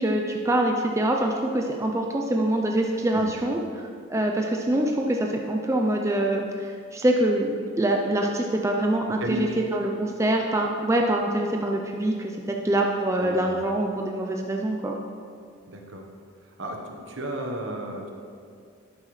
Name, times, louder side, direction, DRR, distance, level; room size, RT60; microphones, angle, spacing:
voice 1, 0.0-3.6 4.1-15.0, right 1 dB, 15° right, 1 dB, 0.5 m, -25 dB
voice 2, 9.2-9.6 13.2-13.5 15.7-16.0 16.6-18.1, equal, 65° right, 2 dB, 1.2 m, -33 dB
11.5 x 8.6 x 3.2 m, 2.3 s
head